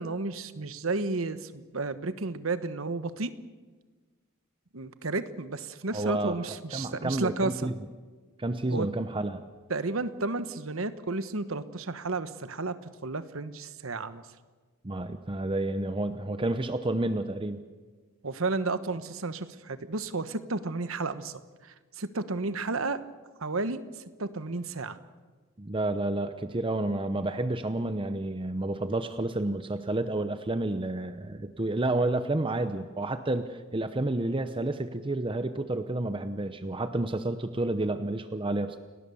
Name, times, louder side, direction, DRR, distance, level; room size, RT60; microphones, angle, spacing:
voice 1, 0.0-3.3 4.7-7.7 8.7-8.9 9.7-14.2 18.2-23.0 23.4-23.8 24.2-25.0, right 3 dB, 70° right, 12 dB, 1.2 m, -32 dB
voice 2, 5.9-6.4 6.7-7.7 8.4-9.4 14.8-17.6 25.6-38.8, right 2 dB, 25° right, 10 dB, 0.8 m, -30 dB
29.5 x 18.5 x 7.0 m, 1.4 s
head